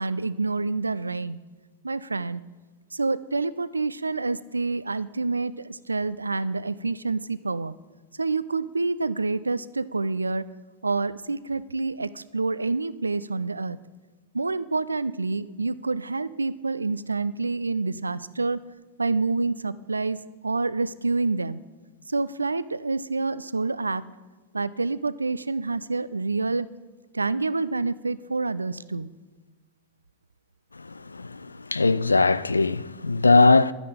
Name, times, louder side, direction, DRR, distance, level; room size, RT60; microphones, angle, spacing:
voice 1, 0.0-1.4 1.8-2.4 2.9-7.7 8.2-10.4 10.8-13.8 14.3-18.6 19.0-20.2 20.4-21.6 22.1-24.0 24.5-26.7 27.1-29.1, right 3 dB, 80° right, 0.4 m, -27 dB
voice 2, 30.8-33.7, left 3 dB, 80° left, 0.3 m, -20 dB
12.0 x 9.6 x 5.1 m
figure-of-eight pair, 90°, 0 cm